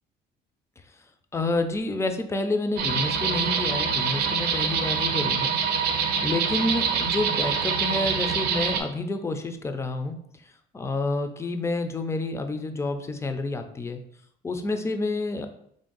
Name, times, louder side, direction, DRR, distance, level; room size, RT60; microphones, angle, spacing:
voice 1, 1.3-5.6 6.2-14.0 14.4-15.5, left 2 dB, 15° left, 7 dB, 0.4 m, -29 dB
sound 1, 2.8-8.8, right 6 dB, 70° right, 0.5 m, -25 dB
3.4 x 2.6 x 3.8 m, 0.69 s
cardioid pair, 110°, 17 cm